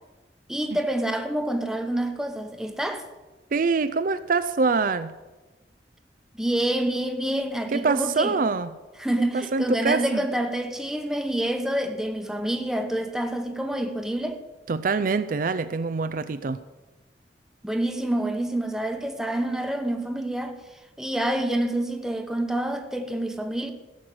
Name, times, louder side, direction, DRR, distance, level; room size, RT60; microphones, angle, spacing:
voice 1, 0.5-3.0 6.4-8.3 9.0-14.4 17.6-20.6 21.0-23.7, right 1 dB, 5° right, 1.0 m, -27 dB
voice 2, 3.5-5.1 7.7-8.7 9.3-10.2 14.7-16.6, right 4 dB, 50° right, 0.5 m, -25 dB
16.0 x 6.4 x 7.7 m
head